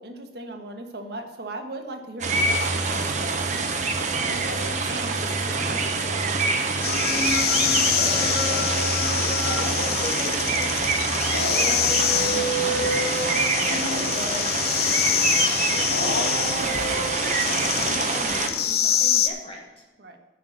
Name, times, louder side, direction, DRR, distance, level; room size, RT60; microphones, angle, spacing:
voice 1, 0.0-6.8 20.0-20.2, right 1 dB, 65° right, 4 dB, 1.4 m, -38 dB
sound 1, 2.2-18.5, right 4 dB, 45° right, 1.1 m, -26 dB
sound 2, 6.8-19.3, left 9 dB, 60° left, 0.7 m, -26 dB
sound 3, 6.9-18.0, equal, 80° left, 2.4 m, -31 dB
voice 2, 8.1-8.9 9.4-19.8, left 1 dB, 30° left, 0 dB, 1.4 m, -41 dB
10.0 x 5.9 x 7.9 m, 1.2 s
head